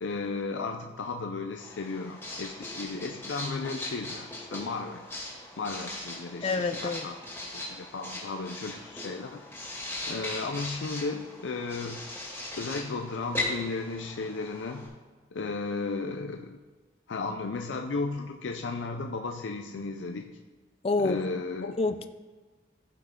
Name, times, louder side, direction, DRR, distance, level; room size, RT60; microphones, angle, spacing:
voice 1, 0.0-5.1 5.6-7.2 7.5-9.4 10.1-12.0 12.5-14.9 15.3-16.6 17.1-20.3 21.0-21.8, left 3 dB, 85° left, 4 dB, 0.5 m, -34 dB
Writing, 1.6-14.9, left 2 dB, 10° left, 2.2 m, -39 dB
voice 2, 6.4-7.0 20.8-21.2 21.8-22.1, left 3 dB, 30° left, 10 dB, 0.3 m, -27 dB
14.5 x 5.6 x 3.7 m, 1.3 s
head